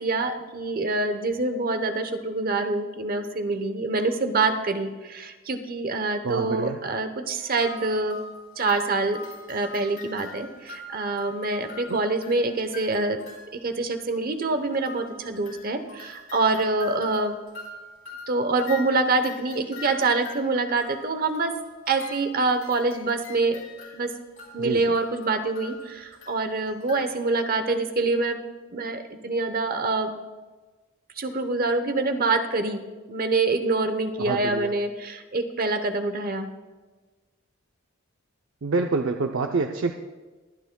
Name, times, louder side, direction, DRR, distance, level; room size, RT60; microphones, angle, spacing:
voice 1, 0.0-8.2 8.6-13.2 13.6-17.4 18.3-21.5 21.9-23.6 23.9-24.1 24.5-28.4 28.7-30.1 31.2-32.8 33.1-36.5, right 3 dB, 45° right, 8 dB, 0.9 m, -26 dB
voice 2, 6.2-6.8 11.9-12.0 24.6-24.9 34.2-34.7 38.6-39.9, right 3 dB, 70° right, 4 dB, 0.6 m, -27 dB
sound 1, 7.4-13.7 14.0-14.1 14.4-14.5 14.7-27.2, left 3 dB, 75° left, 3.4 m, -43 dB
23.0 x 9.4 x 2.3 m, 1.3 s
head